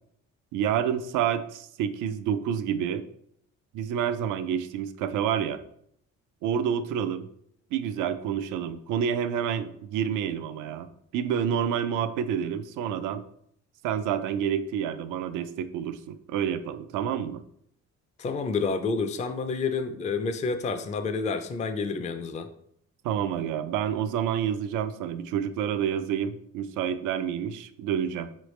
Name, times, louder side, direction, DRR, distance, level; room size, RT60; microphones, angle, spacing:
voice 1, 0.5-3.1 3.7-5.6 6.4-7.3 7.7-13.2 13.8-17.4 23.0-28.3, right 8 dB, 85° right, 11 dB, 0.5 m, -28 dB
voice 2, 18.2-22.5, left 4 dB, 25° left, 8 dB, 0.4 m, -29 dB
4.7 x 3.2 x 3.1 m, 0.69 s
cardioid pair, 90°, 30 cm